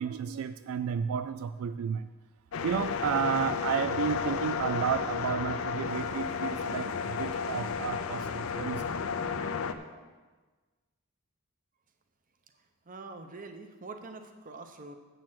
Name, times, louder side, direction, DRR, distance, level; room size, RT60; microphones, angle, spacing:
voice 1, 0.0-2.1 2.6-8.9 9.8-9.9, right 7 dB, 80° right, 12 dB, 0.3 m, -32 dB
sound 1, 2.5-9.7, left 6 dB, 75° left, 0.6 m, -33 dB
voice 2, 12.9-15.0, right 3 dB, 40° right, 6 dB, 0.8 m, -44 dB
7.4 x 6.8 x 7.6 m, 1.3 s
head